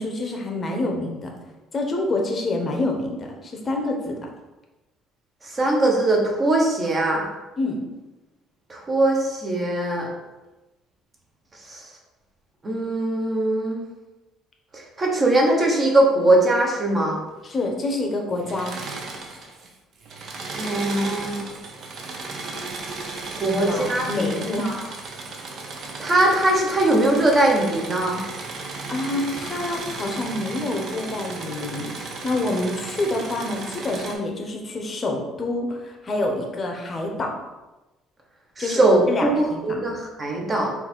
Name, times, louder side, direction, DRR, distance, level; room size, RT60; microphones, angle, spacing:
voice 1, 0.0-1.3 1.7-4.3 7.6-7.8 17.4-18.8 23.4-24.8 28.6-37.3 38.6-38.8 39.1-39.8, left 2 dB, 30° left, 2 dB, 0.8 m, -27 dB
voice 2, 5.4-7.2 8.7-10.1 11.7-11.8 12.6-13.8 14.7-17.2 20.5-21.5 23.4-24.3 24.6-24.8 26.0-28.2 38.6-40.7, right 1 dB, 25° right, 0 dB, 1.0 m, -21 dB
Engine / Mechanisms, 18.4-19.7 20.0-34.1, right 3 dB, 50° right, 0.7 m, -35 dB
4.0 x 2.7 x 4.4 m, 1.1 s
cardioid pair, 120°, 0 cm